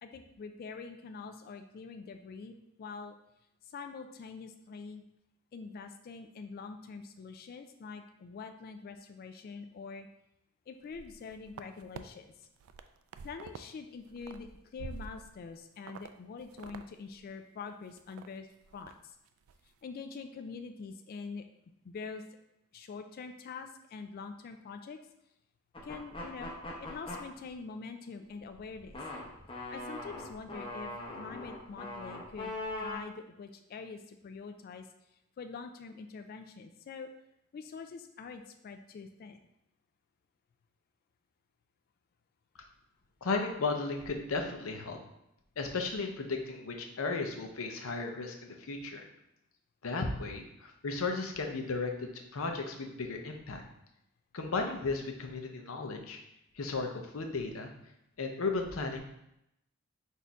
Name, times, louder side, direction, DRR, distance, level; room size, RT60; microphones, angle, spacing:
voice 1, 0.0-3.1 3.7-5.0 5.5-10.1 10.7-12.5 13.2-18.5 18.7-18.9 19.8-21.4 21.8-22.2 22.7-25.0 25.8-26.5 26.8-29.0 29.7-30.9 31.2-32.5 32.8-34.9 35.4-37.1 37.5-39.4, left 5 dB, 45° left, 7 dB, 0.3 m, -45 dB
sound 1, 10.8-12.0 12.4-13.7 14.0-15.5 15.9-16.1 16.4-16.9 17.1-17.2 17.7-18.3 18.6-18.9 19.3-19.6, right 5 dB, 85° right, 0.3 m, -47 dB
sound 2, 25.7-27.2 28.4-33.0, left 2 dB, 25° left, 0.8 m, -41 dB
voice 2, 43.2-45.0 45.6-49.0 49.8-53.6 54.3-56.2 56.6-56.9 57.1-57.7 58.2-59.0, left 3 dB, 80° left, 4 dB, 0.7 m, -35 dB
4.2 x 2.6 x 4.6 m, 0.83 s
head